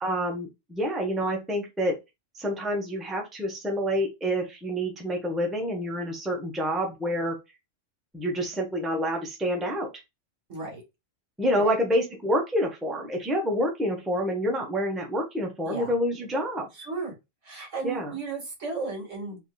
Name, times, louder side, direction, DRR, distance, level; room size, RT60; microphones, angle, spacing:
voice 1, 0.0-2.0 2.3-7.4 8.1-9.9 11.4-16.6 17.8-18.1, equal, ahead, 0 dB, 0.9 m, -28 dB
voice 2, 10.5-10.8 11.5-11.7 15.6-15.9 16.8-17.1 17.4-19.4, right 3 dB, 70° right, 0 dB, 2.2 m, -34 dB
5.4 x 3.0 x 2.3 m, 0.23 s
omnidirectional pair, 1.3 m